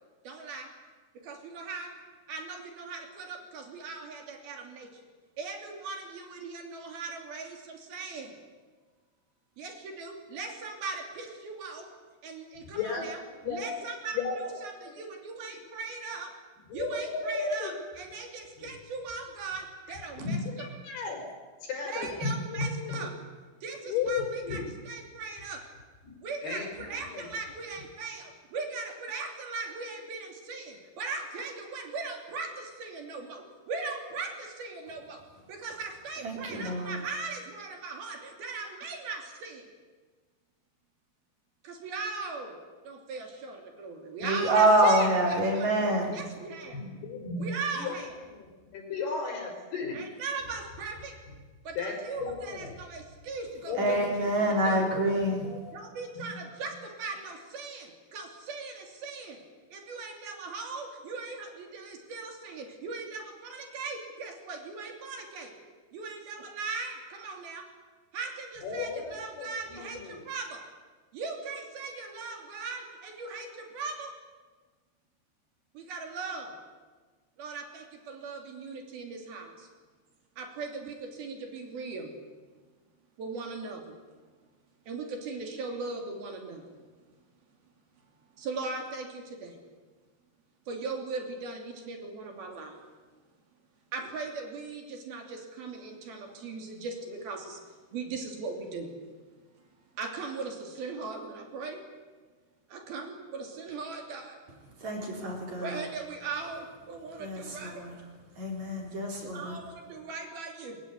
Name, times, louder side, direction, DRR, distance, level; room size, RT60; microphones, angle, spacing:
voice 1, 0.2-0.7 1.1-2.0 2.3-5.0 5.4-8.4 9.6-11.9 12.2-13.2 13.5-16.3 16.7-20.4 21.9-23.2 23.6-25.7 26.2-39.7 41.6-42.6 42.8-46.8 47.4-48.2 49.9-51.2 51.6-54.8 55.7-59.4 59.7-65.5 65.9-67.7 68.1-70.7 71.1-74.1 75.7-76.6 77.4-79.7 80.4-82.1 83.2-84.0 84.9-86.8 88.4-89.6 90.7-92.8 93.9-98.9 99.9-101.8 102.7-104.4 105.6-107.8 109.2-110.8, right 4 dB, 65° right, 3 dB, 4.6 m, -39 dB
voice 2, 12.6-13.1 13.4-13.8 14.1-14.5 14.9-15.0 16.7-17.7 18.6-18.7 20.2-21.3 21.6-23.1 23.9-24.7 26.0-26.2 26.4-27.3 46.7-48.0 48.3-50.0 51.8-52.7 53.7-55.1 55.4-55.6 56.1-56.3 56.6-56.7 68.6-70.2, left 4 dB, 65° left, 2 dB, 6.9 m, -35 dB
voice 3, 36.2-37.0 44.2-46.2 53.8-55.4 104.8-105.8 107.2-107.9 108.4-109.6, right 1 dB, 45° right, 0 dB, 5.0 m, -26 dB
22.0 x 21.0 x 9.8 m, 1.4 s
omnidirectional pair, 4.9 m